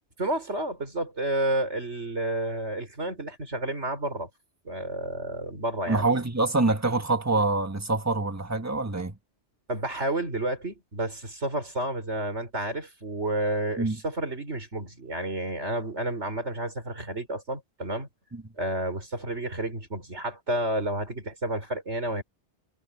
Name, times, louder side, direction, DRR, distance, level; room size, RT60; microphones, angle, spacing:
voice 1, 0.2-4.3 4.6-6.1 9.7-18.1 18.6-22.2, right 1 dB, 75° right, 5.4 m, -30 dB
voice 2, 5.9-9.2 13.8-14.0 18.3-18.4, right 2 dB, 15° right, 1.3 m, -25 dB
omnidirectional pair, 1.2 m